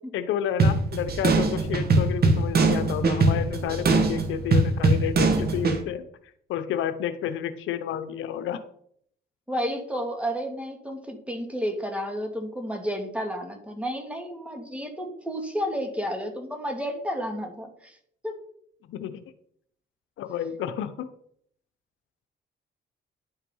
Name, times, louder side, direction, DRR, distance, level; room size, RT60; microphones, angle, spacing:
voice 1, 0.1-6.0 6.5-8.6 18.9-19.3 20.2-21.1, left 9 dB, 80° left, 10 dB, 0.8 m, -30 dB
sound 1, 0.6-5.8, right 3 dB, 50° right, 1.7 m, -22 dB
voice 2, 9.5-17.9 18.2-18.3, equal, 5° right, 4 dB, 2.3 m, -31 dB
10.5 x 5.7 x 5.5 m, 0.66 s
cardioid pair, 90°, 20 cm